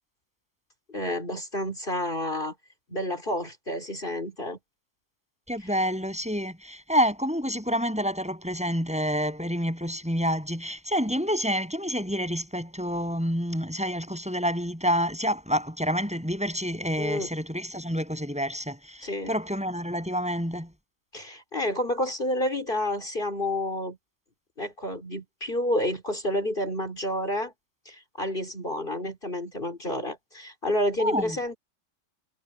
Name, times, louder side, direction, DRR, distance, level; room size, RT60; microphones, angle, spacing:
voice 1, 0.9-2.5 2.9-4.6 17.0-17.3 19.0-19.3 21.1-24.0 24.6-27.5 27.8-31.6, left 1 dB, 40° left, 4.4 m, -29 dB
voice 2, 5.5-20.7 31.0-31.3, equal, 5° right, 7.5 m, -28 dB
omnidirectional pair, 1.3 m